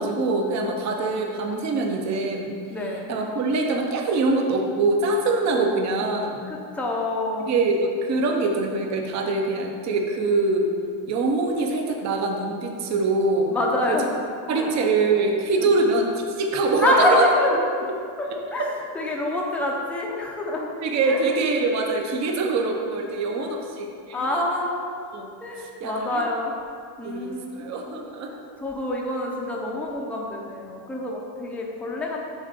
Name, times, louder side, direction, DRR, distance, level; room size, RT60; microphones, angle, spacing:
voice 1, 0.0-2.5 3.1-6.4 7.5-10.7 11.1-13.5 13.9-14.0 14.5-17.3 18.6-18.7 20.8-24.6 25.1-25.3 25.6-26.2 27.0-28.3, right 3 dB, 35° right, 2 dB, 0.9 m, -24 dB
voice 2, 2.7-3.1 6.5-7.5 13.5-14.2 14.5-14.7 15.6-15.7 16.8-17.7 18.2-18.7 18.9-20.7 21.1-21.2 23.4-23.6 24.1-25.0 25.4-26.5 27.0-27.7 28.3-32.3, left 1 dB, 5° left, -2 dB, 0.6 m, -26 dB
7.3 x 3.9 x 6.6 m, 2.3 s
cardioid pair, 150°, 47 cm